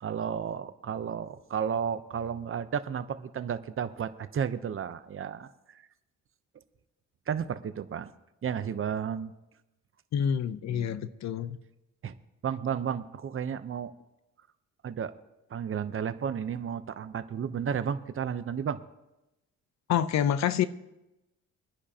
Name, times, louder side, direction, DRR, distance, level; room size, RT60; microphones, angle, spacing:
voice 1, 0.0-5.8 7.3-8.1 8.4-9.3 10.7-11.0 12.0-12.1 12.4-13.9 14.8-15.1 15.5-18.8, right 7 dB, 45° right, 0.8 m, -33 dB
voice 2, 10.1-11.6 19.9-20.7, left 9 dB, 65° left, 0.7 m, -27 dB
24.0 x 10.0 x 2.9 m
cardioid pair, 90°, 30 cm